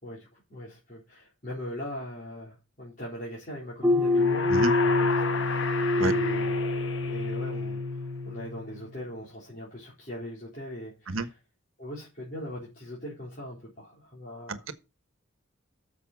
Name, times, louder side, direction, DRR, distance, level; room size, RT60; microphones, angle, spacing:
voice 1, 0.0-4.5 4.8-5.7 5.9-6.6 7.1-11.3 11.8-14.6, equal, 40° left, 4.0 m, -40 dB
sound 1, 3.8-9.0, left 2 dB, 10° right, 1.7 m, -27 dB
sound 2, 4.1-7.9, left 5 dB, 65° left, 1.2 m, -33 dB
voice 2, 4.5-4.7 6.0-6.1 11.1-11.3 14.5-14.7, right 2 dB, 85° right, 1.2 m, -28 dB
8.8 x 7.0 x 6.1 m
head